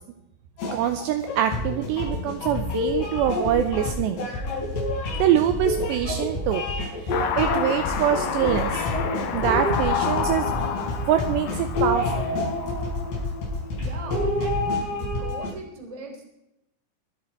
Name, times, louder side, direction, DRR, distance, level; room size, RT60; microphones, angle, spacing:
sound 1, 0.6-15.5, left 2 dB, 55° left, 6.5 m, -28 dB
voice 1, 0.7-4.2 5.2-6.6 7.1-8.8 9.3-10.5 11.1-12.3, right 10 dB, 85° right, 8 dB, 2.5 m, -24 dB
Car passing by / Accelerating revving vroom, 7.1-13.7, left 7 dB, 85° left, 1.9 m, -30 dB
voice 2, 13.8-16.2, right 2 dB, 10° right, 1 dB, 1.7 m, -39 dB
23.0 x 7.8 x 4.4 m, 0.87 s
omnidirectional pair, 5.8 m